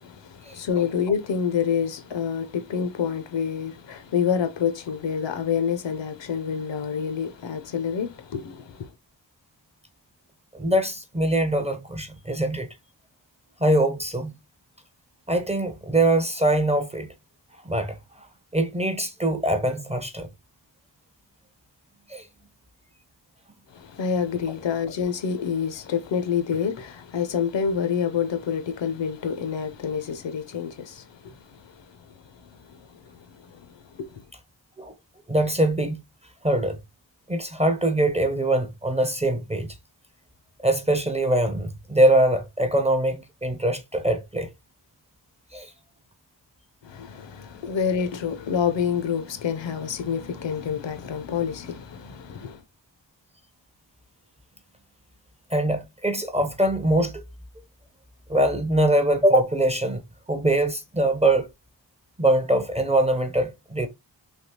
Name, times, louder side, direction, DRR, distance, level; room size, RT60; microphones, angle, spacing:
voice 1, 0.0-8.9 23.7-32.0 32.4-34.2 46.8-52.6, left 7 dB, 75° left, 0.6 m, -28 dB
voice 2, 10.5-12.7 13.6-14.3 15.3-17.1 17.6-18.0 18.5-20.3 22.1-22.3 34.8-34.9 35.3-36.0 36.4-36.8 37.3-39.7 40.6-44.5 45.5-45.7 47.6-47.7 55.5-57.2 58.3-60.0 60.3-61.5 62.2-63.9, right 1 dB, 15° right, 0.4 m, -23 dB
3.4 x 2.8 x 2.7 m
wide cardioid pair, 105°, 44 cm